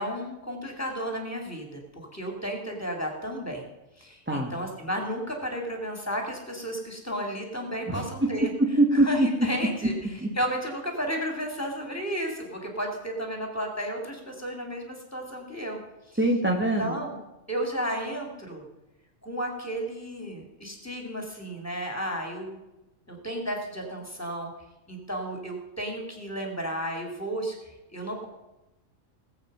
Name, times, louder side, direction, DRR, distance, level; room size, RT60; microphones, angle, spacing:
voice 1, 0.0-3.7 4.0-8.5 8.9-15.8 16.1-16.2 16.8-17.1 17.5-18.6 19.2-22.6 23.1-24.5 24.9-28.3, equal, 10° left, 2 dB, 2.8 m, -33 dB
voice 2, 7.9-9.3 10.2-10.3 16.2-16.9, right 1 dB, 10° right, 1 dB, 1.1 m, -23 dB
19.0 x 8.2 x 5.5 m, 0.97 s
omnidirectional pair, 1.4 m